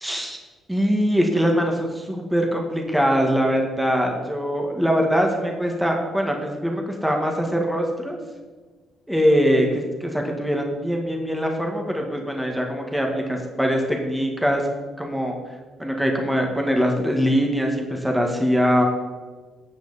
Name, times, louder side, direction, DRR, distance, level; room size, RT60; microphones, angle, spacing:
voice 1, 0.0-0.4 0.7-8.2 9.1-14.6 15.0-15.3 15.8-18.8, equal, 5° right, 1 dB, 1.8 m, -22 dB
11.5 x 8.2 x 4.2 m, 1.4 s
cardioid pair, 90°, 0 cm